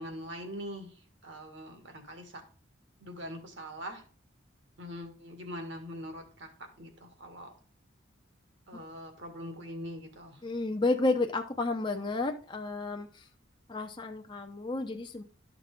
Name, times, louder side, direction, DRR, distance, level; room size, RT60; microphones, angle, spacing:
voice 1, 0.0-2.4 3.0-4.0 4.8-7.5 8.7-10.4, equal, 65° right, 4 dB, 2.0 m, -43 dB
voice 2, 10.4-13.2 13.7-15.2, left 3 dB, 25° left, 4 dB, 0.6 m, -31 dB
12.0 x 6.0 x 3.6 m, 0.41 s
head